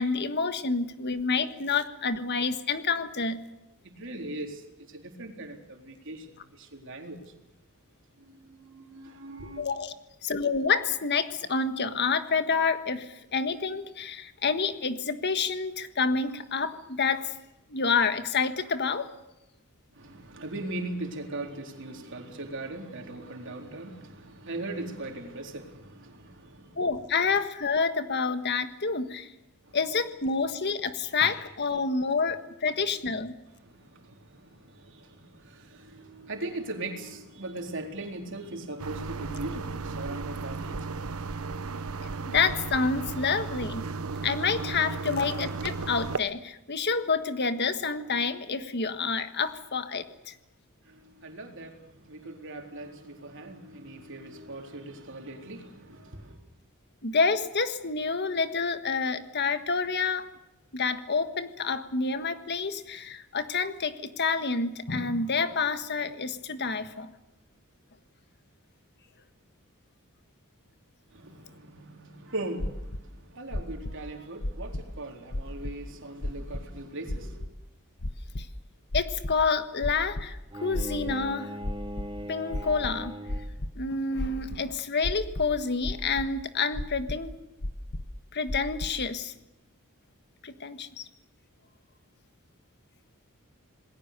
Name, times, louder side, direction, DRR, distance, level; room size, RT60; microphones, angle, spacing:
voice 1, 0.0-3.4 9.6-9.9 10.2-17.3 17.7-19.1 26.8-29.3 29.7-33.3 42.2-43.8 44.2-50.3 57.0-60.3 60.7-67.1 78.4-78.5 78.9-81.5 82.3-83.2 83.7-87.3 88.3-89.3 90.4-91.0, left 4 dB, 50° left, 1.5 m, -28 dB
voice 2, 3.8-7.3 8.2-9.6 19.9-26.8 29.6-29.8 33.5-41.5 50.8-56.4 71.1-77.4, right 2 dB, 60° right, 4.0 m, -40 dB
sound 1, 38.8-46.2, right 4 dB, 75° right, 1.0 m, -35 dB
sound 2, 72.6-73.0 73.5-74.0 74.4-74.9 75.3-75.7 76.2-76.6 77.1-77.5 78.0-78.5 78.9-79.4 79.8-80.3 80.7-81.3 81.6-82.1 82.5-83.7 84.2-84.6 85.0-85.6 85.8-86.3 86.7-87.2 87.6-88.1 88.5-88.9, left 1 dB, 80° left, 1.4 m, -33 dB
Bowed string instrument, 80.5-83.7, equal, 20° right, 1.3 m, -39 dB
27.5 x 20.0 x 6.8 m
head